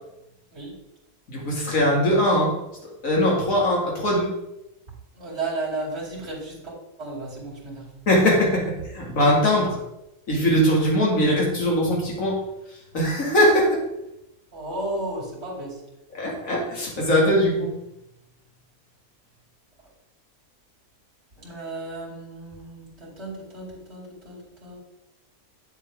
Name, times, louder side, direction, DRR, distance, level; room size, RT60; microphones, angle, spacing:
voice 1, 1.3-2.5 3.0-4.3 8.1-9.8 10.3-12.4 12.9-13.8 16.1-17.7, equal, 55° left, -3 dB, 2.5 m, -21 dB
voice 2, 5.1-7.9 14.5-15.8 21.4-24.8, right 2 dB, 40° right, -5 dB, 3.0 m, -34 dB
8.0 x 7.2 x 3.6 m, 0.89 s
omnidirectional pair, 1.7 m